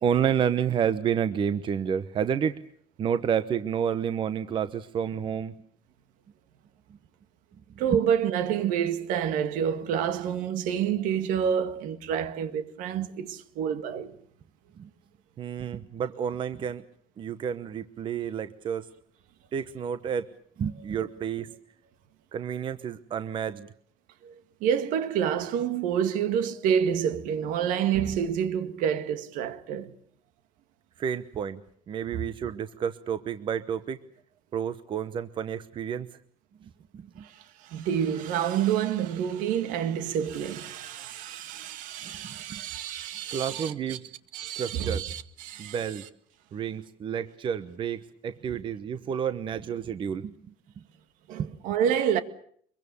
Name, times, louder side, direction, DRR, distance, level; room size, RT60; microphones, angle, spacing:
voice 1, 0.0-2.6 3.0-5.5 7.9-8.0 14.8-14.9 15.4-16.8 17.2-18.9 19.5-20.3 20.6-21.5 22.3-23.7 31.0-31.6 31.9-34.0 34.5-36.1 36.6-37.3 42.2-42.6 43.3-44.1 44.6-45.1 45.6-46.0 46.5-50.3 51.4-51.5, right 8 dB, 35° right, 1.0 m, -30 dB
voice 2, 7.8-14.2 24.2-29.9 32.1-32.2 37.2-44.0 44.3-45.8 51.3-52.2, right 8 dB, 70° right, 2.0 m, -28 dB
24.5 x 23.0 x 6.9 m
cardioid pair, 130°, 14 cm